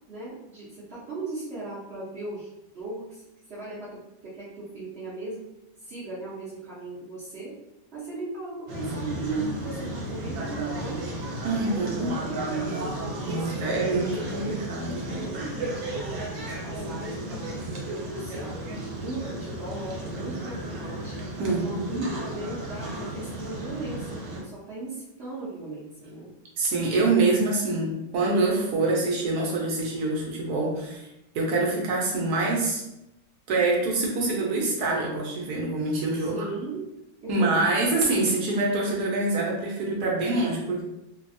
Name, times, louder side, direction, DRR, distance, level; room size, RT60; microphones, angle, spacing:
voice 1, 0.1-5.5 5.8-7.6 7.9-11.1 11.7-12.9 13.3-14.6 15.1-18.6 19.0-21.2 21.5-26.3 36.1-36.8 37.2-37.6, right 3 dB, 55° right, -8 dB, 0.8 m, -37 dB
sound 1, 8.7-24.4, right 1 dB, 85° right, 1.4 m, -34 dB
voice 2, 11.4-12.1 13.3-15.1 21.4-22.1 26.6-31.1 31.3-32.8 33.5-36.5 37.3-40.8, right 2 dB, 70° right, -3 dB, 1.1 m, -25 dB
3.2 x 2.2 x 2.6 m, 0.89 s
omnidirectional pair, 1.8 m